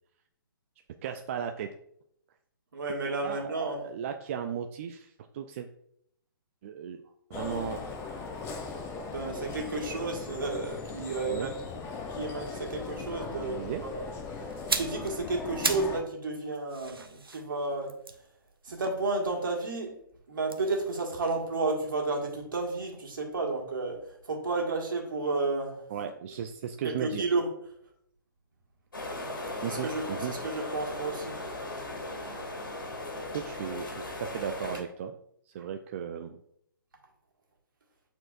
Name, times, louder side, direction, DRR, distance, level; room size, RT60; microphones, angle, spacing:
voice 1, 1.0-1.7 3.2-5.7 6.6-7.0 7.3-7.8 11.3-11.5 13.5-13.8 25.9-27.2 29.6-30.3 33.3-35.1 35.5-36.4, right 8 dB, 35° right, 6 dB, 0.4 m, -36 dB
voice 2, 2.7-3.8 9.1-11.5 12.1-14.1 14.8-18.0 18.6-19.9 20.3-24.0 24.3-25.8 26.8-27.5 29.7-31.4, right 3 dB, 65° right, 0 dB, 1.7 m, -32 dB
sound 1, 7.3-16.0, left 4 dB, 20° left, 0.7 m, -38 dB
sound 2, 14.5-16.0 16.3-19.6 20.4-22.4 22.7-22.9, right 3 dB, 85° right, 0.7 m, -37 dB
sound 3, 28.9-34.8, left 2 dB, 70° left, 2.3 m, -37 dB
8.5 x 4.4 x 2.5 m, 0.71 s
figure-of-eight pair, 130°, 12 cm